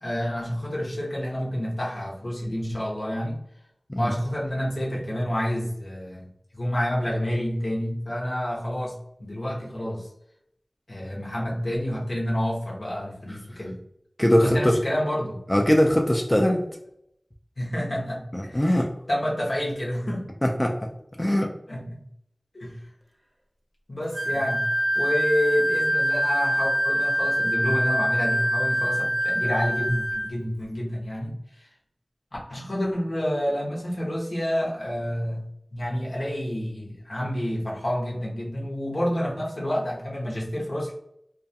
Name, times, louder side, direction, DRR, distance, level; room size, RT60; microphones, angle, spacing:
voice 1, 0.0-3.4 4.0-6.3 6.5-10.1 10.9-13.8 14.4-15.4 17.6-18.6 19.1-20.3 21.7-22.0 22.5-22.8 23.9-31.7 32.5-35.5 35.7-40.9, equal, 75° left, -4 dB, 0.8 m, -29 dB
voice 2, 14.2-14.8 15.5-16.7 18.3-18.9 20.4-20.9 21.2-21.5, equal, 25° left, 1 dB, 0.3 m, -21 dB
Wind instrument woodwind instrument, 24.1-30.3, equal, 30° right, 0.6 m, -24 dB
2.3 x 2.3 x 2.6 m, 0.75 s
wide cardioid pair, 40°, 0 cm